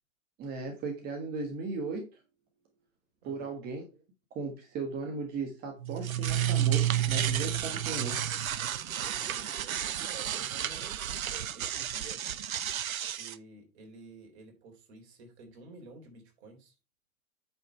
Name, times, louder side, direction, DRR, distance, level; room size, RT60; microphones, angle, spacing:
voice 1, 0.4-2.1 3.2-3.8 4.3-8.2, right 3 dB, 20° right, 1.4 m, -36 dB
voice 2, 3.2-3.6 8.7-12.3 13.2-16.7, right 3 dB, 50° right, 3.6 m, -52 dB
sound 1, 5.8-13.3, right 11 dB, 75° right, 0.8 m, -31 dB
9.0 x 5.2 x 4.3 m
hypercardioid pair, 125°, 42 cm